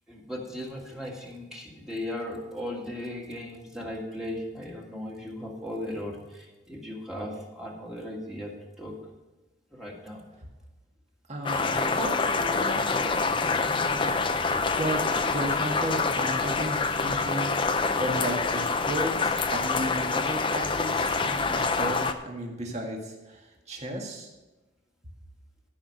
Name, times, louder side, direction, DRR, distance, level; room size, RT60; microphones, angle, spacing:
voice 1, 0.1-9.0 9.7-10.2, left 1 dB, 5° right, -2 dB, 1.8 m, -37 dB
voice 2, 11.3-14.4 14.8-15.0 15.3-24.3, right 1 dB, 35° right, 0 dB, 1.9 m, -34 dB
sound 1, 11.5-22.1, left 4 dB, 25° left, 0.6 m, -26 dB
13.0 x 6.0 x 6.4 m, 1.1 s
head